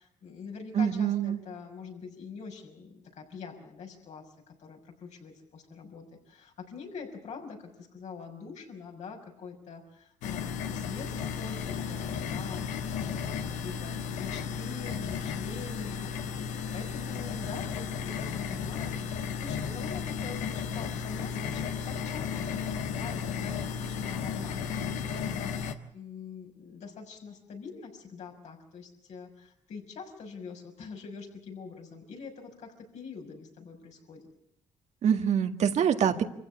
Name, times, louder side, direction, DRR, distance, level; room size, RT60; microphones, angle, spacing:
voice 1, 0.0-16.5 16.7-34.2, left 5 dB, 70° left, 2 dB, 6.1 m, -44 dB
voice 2, 0.8-1.4 35.0-36.2, right 8 dB, 65° right, 7 dB, 1.9 m, -25 dB
sound 1, 10.2-25.7, left 7 dB, 85° left, 1.4 m, -34 dB
25.5 x 15.5 x 8.3 m, 0.75 s
supercardioid pair, 60°, 12 cm